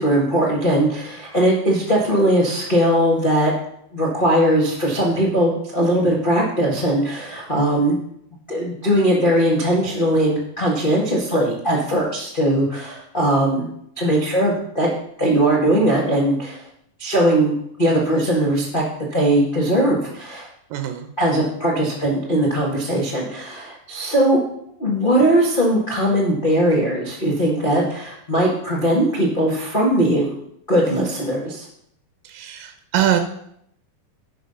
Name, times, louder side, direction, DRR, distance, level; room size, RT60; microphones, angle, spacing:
voice 1, 0.0-3.5 3.9-8.0 8.5-13.7 14.0-14.9 15.2-16.6 17.0-17.5 17.8-18.8 19.1-20.5 21.2-24.4 24.8-30.4 30.7-31.6, right 1 dB, 80° left, -3 dB, 0.4 m, -19 dB
voice 2, 20.7-21.1 32.2-33.2, right 11 dB, 75° right, 7 dB, 2.3 m, -22 dB
10.5 x 5.9 x 5.5 m, 0.72 s
omnidirectional pair, 4.3 m